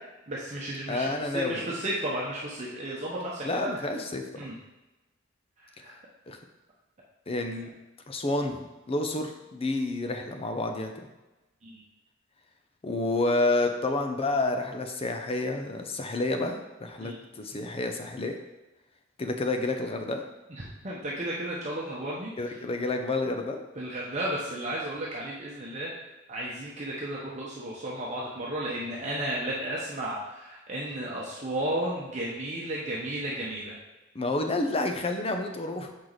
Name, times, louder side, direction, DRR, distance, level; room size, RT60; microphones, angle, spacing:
voice 1, 0.3-3.9 4.4-4.5 5.6-5.9 11.6-11.8 17.0-17.2 20.5-22.3 23.8-25.9 26.3-33.7, right 1 dB, 35° right, -5 dB, 0.9 m, -33 dB
voice 2, 0.9-1.7 3.4-4.4 6.3-6.4 7.3-7.7 8.1-11.1 12.8-18.4 19.2-20.2 22.4-23.6 34.1-35.9, left 2 dB, 30° left, 4 dB, 0.6 m, -29 dB
6.4 x 4.6 x 4.0 m, 1.1 s
head